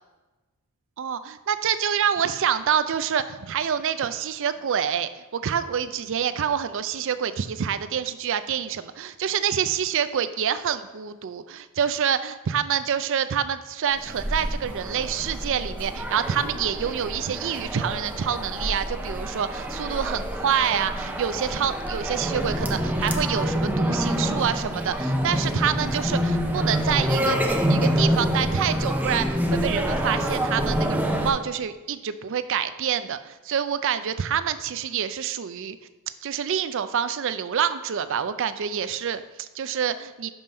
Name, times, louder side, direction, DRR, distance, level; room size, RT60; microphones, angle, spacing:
voice 1, 1.0-27.4 27.7-35.8 36.2-40.3, right 8 dB, 60° right, 12 dB, 0.4 m, -27 dB
sound 1, 14.0-31.3, equal, 5° right, 0.6 m, -26 dB
5.8 x 5.4 x 5.3 m, 1.2 s
head